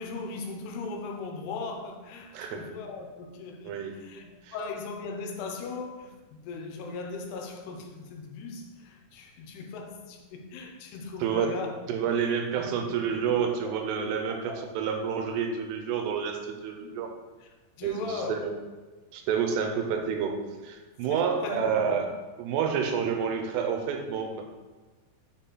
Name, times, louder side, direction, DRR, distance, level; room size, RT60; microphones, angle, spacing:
voice 1, 0.0-11.9 12.2-12.8 13.1-13.7 14.3-14.7 16.8-16.9 17.4-17.5 17.8-18.5 21.1-22.0, left 4 dB, 80° left, 2.7 m, -39 dB
voice 2, 2.3-2.8 3.6-4.0 4.4-4.6 11.2-11.6 11.9-17.1 17.8-18.5 19.1-22.1 22.4-24.5, right 7 dB, 90° right, 2.8 m, -29 dB
6.3 x 4.1 x 3.8 m
omnidirectional pair, 4.8 m